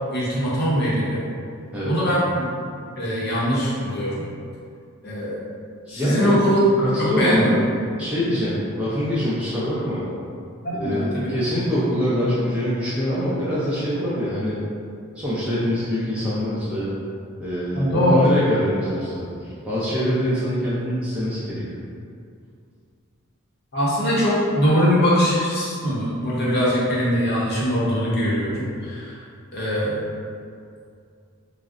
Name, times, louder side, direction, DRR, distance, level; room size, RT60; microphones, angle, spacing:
voice 1, 0.1-1.2 1.8-2.5 3.0-4.2 5.0-5.4 5.9-6.7 7.0-7.5 10.6-11.3 17.7-18.2 23.7-29.2 29.5-30.0, equal, 45° left, -8 dB, 0.7 m, -21 dB
voice 2, 5.9-6.5 6.8-7.6 8.0-10.1 10.8-14.6 15.2-16.9 17.4-21.8, equal, 5° right, -10 dB, 0.4 m, -24 dB
3.6 x 2.0 x 2.4 m, 2.3 s
head